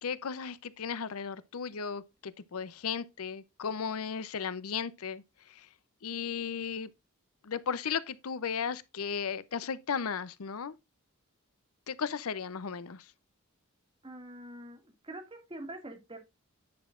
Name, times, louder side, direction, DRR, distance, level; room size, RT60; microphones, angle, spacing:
voice 1, 0.0-5.7 6.0-6.9 7.4-10.7 11.9-13.1, left 6 dB, 70° left, 0.6 m, -35 dB
voice 2, 14.0-16.2, right 1 dB, 25° right, 2.1 m, -45 dB
10.5 x 6.2 x 2.4 m
head